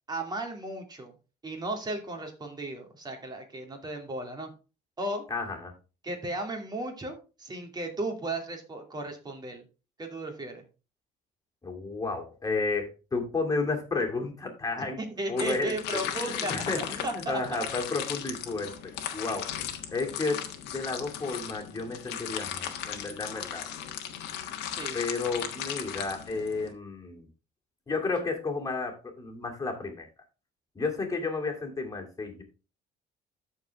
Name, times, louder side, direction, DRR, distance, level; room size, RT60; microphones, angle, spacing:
voice 1, 0.1-1.1 1.4-4.5 5.0-5.2 6.0-9.6 10.0-10.6 15.0-17.7 24.7-25.1, right 2 dB, 25° right, 3 dB, 2.6 m, -35 dB
voice 2, 5.3-5.7 11.6-19.5 19.9-23.7 24.9-27.3 27.9-30.1 30.7-32.4, left 3 dB, 20° left, 1 dB, 2.6 m, -32 dB
sound 1, 15.4-26.7, left 10 dB, 90° left, 1.4 m, -37 dB
13.5 x 4.6 x 3.5 m, 0.32 s
cardioid pair, 110°, 17 cm